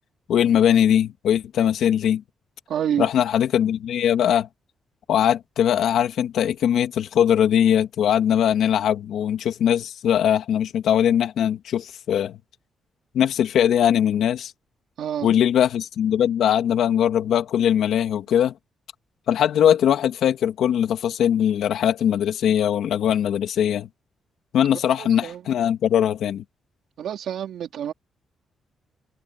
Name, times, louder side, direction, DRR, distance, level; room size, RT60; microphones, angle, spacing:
voice 1, 0.3-2.2 3.0-4.5 5.1-12.4 13.1-14.5 15.2-18.5 19.3-23.9 24.5-26.4, left 9 dB, 75° left, 2.5 m, -21 dB
voice 2, 2.7-3.1 15.0-15.3 25.0-25.5 27.0-27.9, right 9 dB, 75° right, 3.1 m, -28 dB
cardioid pair, 140°, 0 cm